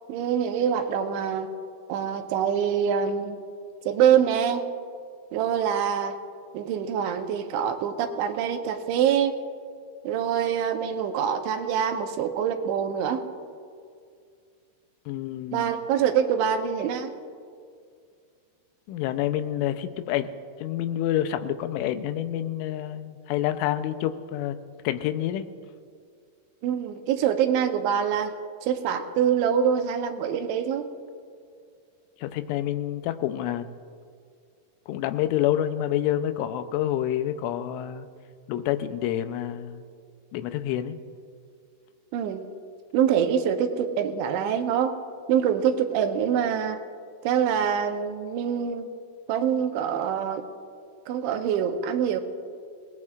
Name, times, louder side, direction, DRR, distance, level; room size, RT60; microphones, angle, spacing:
voice 1, 0.1-1.5 1.9-3.4 3.9-4.7 5.3-6.2 6.5-9.4 10.0-13.2 15.5-17.1 26.6-28.4 28.6-30.9 42.1-42.4 42.9-45.0 45.3-46.8 47.2-48.9 49.3-50.4 51.1-52.2, right 8 dB, 80° right, 6 dB, 3.1 m, -25 dB
voice 2, 15.1-15.7 18.9-20.3 20.6-24.6 24.8-25.5 32.2-33.7 34.9-38.1 38.5-39.9 40.3-41.0, left 12 dB, 90° left, 9 dB, 3.2 m, -28 dB
27.0 x 19.0 x 2.5 m, 2.2 s
omnidirectional pair, 5.4 m